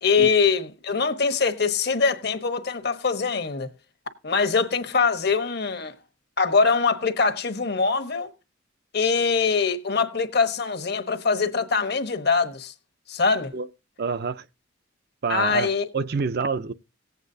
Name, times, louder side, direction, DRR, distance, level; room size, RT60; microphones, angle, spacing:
voice 1, 0.0-3.7 4.2-5.9 6.4-8.3 8.9-12.7 13.1-13.5 15.3-15.9, left 5 dB, 55° left, 1.1 m, -23 dB
voice 2, 14.0-14.4 15.2-16.7, right 5 dB, 55° right, 0.5 m, -27 dB
18.5 x 8.2 x 2.7 m
head